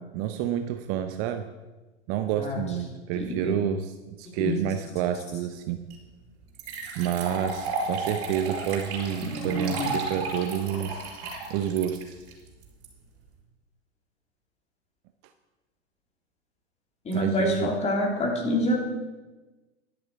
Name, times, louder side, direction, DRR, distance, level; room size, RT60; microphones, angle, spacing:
voice 1, 0.1-1.5 2.1-5.8 7.0-12.2 17.1-17.7, right 10 dB, 35° right, 9 dB, 0.7 m, -29 dB
voice 2, 3.2-3.5 4.4-4.5 9.2-9.9 17.0-18.8, left 1 dB, 20° left, 0 dB, 2.9 m, -27 dB
sound 1, 5.9-6.0 6.5-12.8, right 3 dB, 55° right, 4.7 m, -33 dB
11.0 x 10.5 x 4.6 m, 1.2 s
hypercardioid pair, 105°, 34 cm